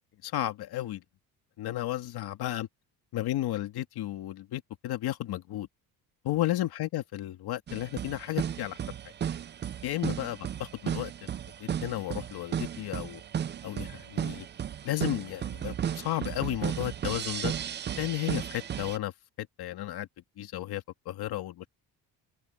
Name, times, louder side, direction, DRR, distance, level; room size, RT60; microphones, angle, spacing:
voice 1, 0.2-1.0 1.6-2.7 3.1-5.7 6.2-8.8 9.8-11.3 11.6-13.2 13.6-14.5 14.8-17.5 18.0-19.1 19.4-20.1 20.4-21.7, left 14 dB, 70° left, 2.1 m, -33 dB
sound 1, 7.7-19.0, right 9 dB, 30° right, 0.4 m, -34 dB
cardioid pair, 150°, 39 cm